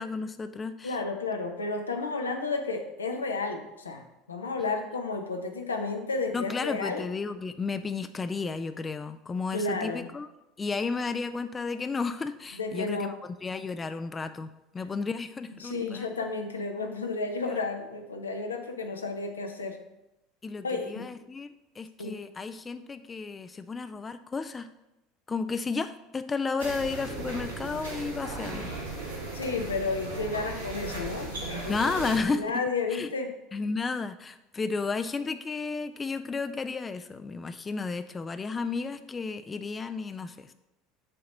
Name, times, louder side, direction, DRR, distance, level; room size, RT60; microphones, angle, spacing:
voice 1, 0.0-1.0 6.3-10.3 10.6-13.1 13.4-16.1 20.4-21.5 21.8-24.7 25.3-28.7 31.7-32.4 32.9-33.1 33.5-40.5, left 4 dB, 25° left, 11 dB, 0.3 m, -33 dB
voice 2, 0.8-7.1 9.5-10.1 12.5-13.1 15.6-19.8 20.6-21.1 22.0-22.2 29.3-31.3 31.6-31.8 32.2-33.3, left 3 dB, 85° left, 5 dB, 0.6 m, -32 dB
sound 1, 26.6-32.2, right 2 dB, 85° right, 1.3 m, -36 dB
6.5 x 2.9 x 5.2 m, 0.94 s
hypercardioid pair, 75°, 0 cm